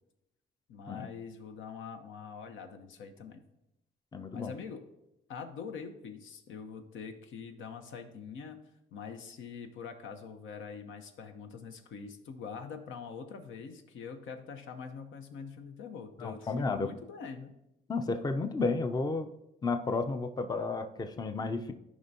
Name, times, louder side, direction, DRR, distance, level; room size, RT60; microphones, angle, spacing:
voice 1, 0.7-3.4 4.3-4.8 5.3-8.6 8.9-17.5, left 6 dB, 80° left, 6 dB, 0.9 m, -44 dB
voice 2, 4.1-4.6 16.2-16.9 17.9-19.3 19.6-21.7, left 3 dB, 20° left, 8 dB, 0.5 m, -32 dB
12.5 x 5.1 x 2.7 m, 0.88 s
cardioid pair, 90°, 20 cm